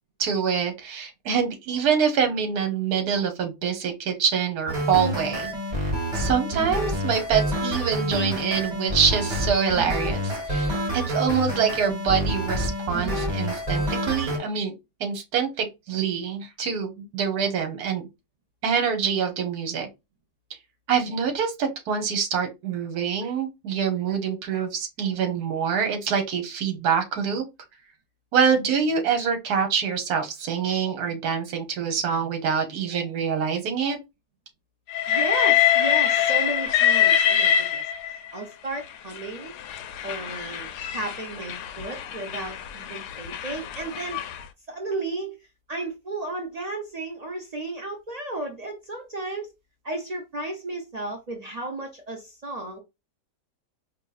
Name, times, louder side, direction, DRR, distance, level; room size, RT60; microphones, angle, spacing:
voice 1, 0.2-5.8 6.1-14.7 15.0-18.1 18.6-19.9 20.9-27.4 28.3-34.0, right 7 dB, 70° right, 1.4 m, -25 dB
sound 1, 4.7-14.4, equal, 25° right, 1.2 m, -27 dB
Train, 34.9-38.3 39.2-44.4, left 10 dB, 75° left, 1.1 m, -24 dB
voice 2, 35.1-39.5 40.0-44.2 44.7-45.4 45.7-49.5 49.8-52.8, right 2 dB, 85° right, 0.3 m, -34 dB
4.5 x 2.9 x 2.3 m
omnidirectional pair, 1.8 m